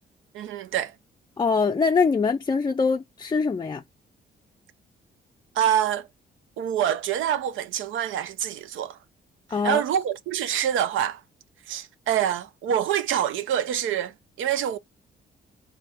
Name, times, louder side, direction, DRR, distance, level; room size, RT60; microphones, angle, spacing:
voice 1, 0.3-0.9 5.6-6.1 6.6-9.0 9.6-11.2 11.7-14.8, right 10 dB, 80° right, 0.6 m, -26 dB
voice 2, 1.4-3.8 9.5-9.8, left 5 dB, 20° left, 0.4 m, -23 dB
3.4 x 3.4 x 4.2 m
cardioid pair, 70°, 20 cm